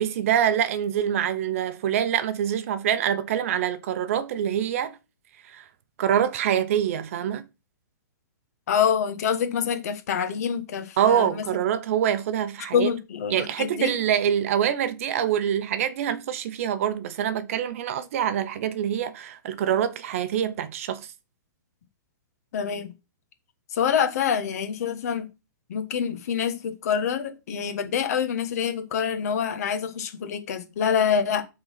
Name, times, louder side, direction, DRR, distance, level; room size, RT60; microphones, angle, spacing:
voice 1, 0.0-5.0 5.5-5.6 6.0-7.4 11.0-12.9 13.3-21.1, right 9 dB, 45° right, 0.8 m, -25 dB
voice 2, 8.7-11.4 12.7-13.9 22.5-22.9 23.7-25.3 25.7-31.4, left 7 dB, 50° left, 1.4 m, -26 dB
7.9 x 4.0 x 5.7 m
hypercardioid pair, 165°, 11 cm